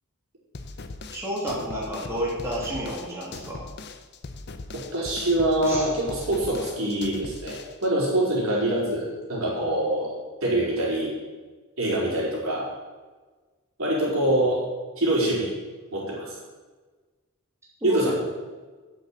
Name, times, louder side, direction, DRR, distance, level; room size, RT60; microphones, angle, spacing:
sound 1, 0.5-7.9, left 3 dB, 50° left, 0.8 m, -40 dB
voice 1, 1.1-3.7 5.7-5.8 17.8-18.1, equal, 15° right, -6 dB, 3.1 m, -30 dB
voice 2, 4.7-11.1 11.8-12.7 13.8-14.6 15.0-15.5 15.9-16.4 17.8-18.1, right 1 dB, 65° right, -5 dB, 4.8 m, -25 dB
8.9 x 8.3 x 8.1 m, 1.3 s
head